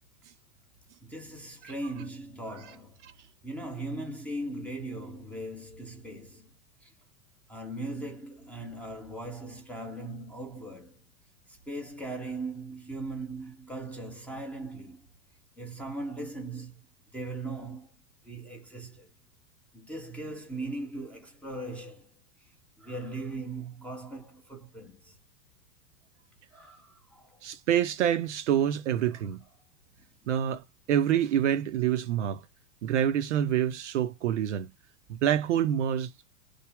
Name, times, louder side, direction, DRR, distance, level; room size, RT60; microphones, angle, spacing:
voice 1, 1.0-3.0 3.4-6.5 6.8-6.9 7.5-11.0 11.5-15.1 15.6-16.9 17.1-17.9 18.2-19.1 19.7-22.1 22.4-22.5 22.8-25.2 26.5-27.4 29.1-29.3, right 2 dB, 5° left, 0.6 m, -39 dB
voice 2, 27.4-29.4 30.3-32.4 32.8-34.7 35.1-36.1, right 10 dB, 50° right, 0.5 m, -27 dB
3.3 x 2.0 x 3.5 m
figure-of-eight pair, 90°, 47 cm